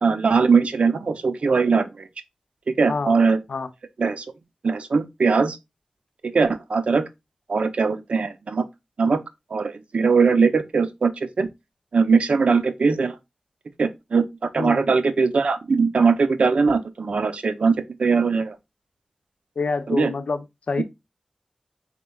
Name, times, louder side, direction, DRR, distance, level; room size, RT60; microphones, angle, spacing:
voice 1, 0.0-2.1 2.7-3.4 4.0-4.2 4.6-5.6 6.2-7.0 7.5-8.6 9.0-9.2 9.5-11.5 11.9-13.2 13.8-18.5 19.9-20.1 20.8-20.9, right 4 dB, 85° right, 0.5 m, -20 dB
voice 2, 19.6-20.8, left 4 dB, 85° left, 0.5 m, -27 dB
4.3 x 4.3 x 2.2 m
cardioid pair, 45°, 2 cm